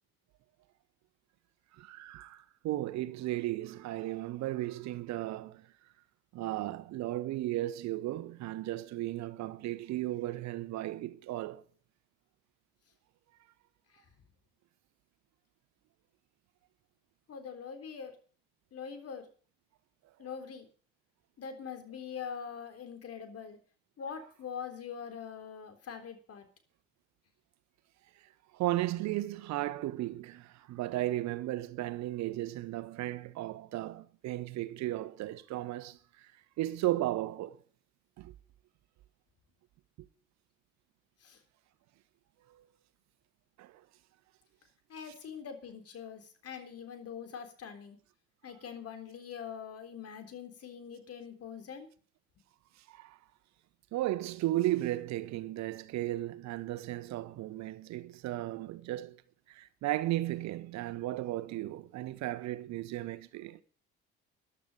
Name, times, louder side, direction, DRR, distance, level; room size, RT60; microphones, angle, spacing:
voice 1, 1.7-5.7 6.3-11.6 28.5-36.3 36.6-37.6 38.2-38.3 42.5-42.6 43.6-43.8 52.9-53.2 53.9-59.2 59.5-63.6, right 15 dB, 65° right, 1.1 m, -35 dB
voice 2, 17.3-18.2 18.7-19.3 20.2-20.7 21.4-23.6 24.0-26.5 41.2-41.4 44.9-48.0 48.4-51.9, left 7 dB, 50° left, 3.7 m, -43 dB
13.5 x 11.5 x 5.4 m
hypercardioid pair, 65°, 30 cm